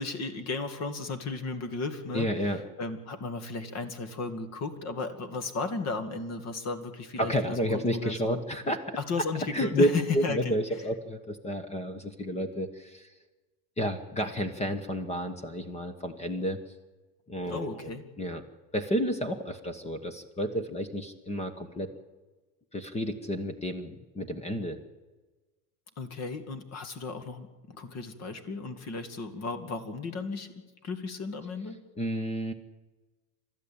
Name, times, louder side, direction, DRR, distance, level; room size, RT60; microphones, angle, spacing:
voice 1, 0.0-2.5 2.8-8.4 9.0-10.6 17.5-18.0 26.0-31.8, left 4 dB, 30° left, 10 dB, 2.2 m, -35 dB
voice 2, 2.1-2.6 7.2-9.0 9.5-9.9 10.1-13.1 13.8-16.6 17.3-17.9 18.2-18.4 18.7-21.9 22.7-24.8 32.0-32.5, equal, 15° left, 10 dB, 1.2 m, -30 dB
29.0 x 13.0 x 8.7 m, 1.3 s
supercardioid pair, 150°, 49 cm